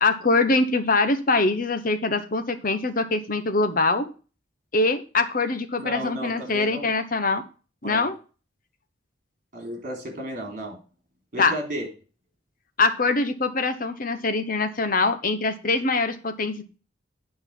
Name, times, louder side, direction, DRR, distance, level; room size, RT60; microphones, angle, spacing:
voice 1, 0.0-4.1 4.7-7.4 7.8-8.2 11.4-11.5 12.8-16.6, left 3 dB, 45° left, 9 dB, 1.0 m, -23 dB
voice 2, 5.8-6.9 7.8-8.1 9.5-10.8 11.3-11.9, equal, 40° right, 2 dB, 3.6 m, -33 dB
9.3 x 5.5 x 5.8 m, 0.35 s
head